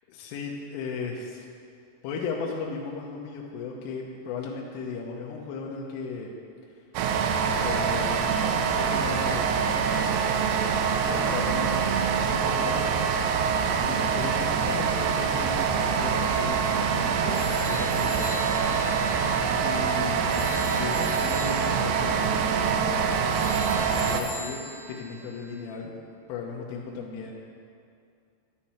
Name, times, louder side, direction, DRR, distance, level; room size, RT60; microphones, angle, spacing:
voice 1, 0.1-1.5 2.0-6.3 7.5-9.8 11.1-12.9 13.8-18.6 19.6-20.4 20.8-25.9 26.3-27.3, left 5 dB, 85° left, -2 dB, 3.4 m, -36 dB
sound 1, 7.0-24.2, right 6 dB, 85° right, 2.5 m, -25 dB
sound 2, 11.2-18.9, right 2 dB, 65° right, 3.5 m, -47 dB
sound 3, 16.1-25.6, left 2 dB, 70° left, 2.2 m, -41 dB
10.0 x 9.2 x 4.3 m, 2.4 s
omnidirectional pair, 5.7 m